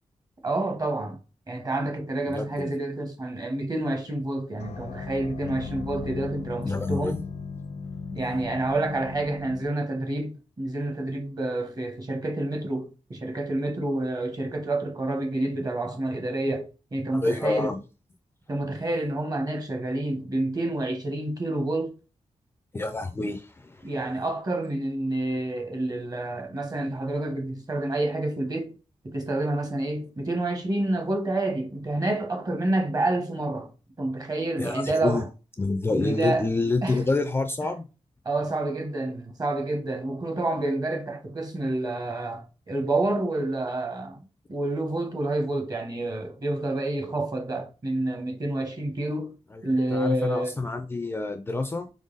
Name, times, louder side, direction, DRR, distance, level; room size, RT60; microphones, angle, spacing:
voice 1, 0.4-1.2 1.5-7.2 8.1-17.7 18.5-21.9 23.8-28.7 29.0-33.7 34.0-35.3 35.9-36.4 36.8-37.0 38.2-49.3 49.6-50.6, right 2 dB, 35° right, 1.1 m, -28 dB
voice 2, 2.3-2.7 6.6-7.2 17.1-17.8 22.7-23.9 34.6-35.2 35.6-37.8 49.5-49.6 49.9-51.9, left 3 dB, 20° left, 0.4 m, -28 dB
sound 1, 4.6-9.6, left 5 dB, 80° left, 0.6 m, -37 dB
3.8 x 3.4 x 3.9 m
wide cardioid pair, 150°, 11 cm